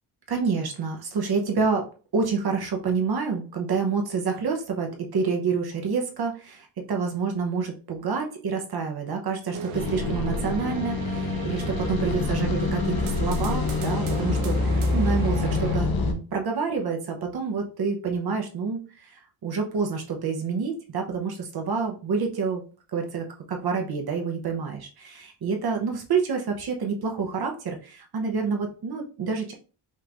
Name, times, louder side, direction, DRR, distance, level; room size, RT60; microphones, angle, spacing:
voice 1, 0.3-1.9 2.1-22.6 22.9-29.5, right 5 dB, 50° right, 2 dB, 0.9 m, -28 dB
sound 1, 9.5-15.8, right 3 dB, 85° right, 0.9 m, -36 dB
sound 2, 9.7-16.1, left 3 dB, 50° left, 0.9 m, -26 dB
5.6 x 3.1 x 2.5 m, 0.37 s
cardioid pair, 140°, 48 cm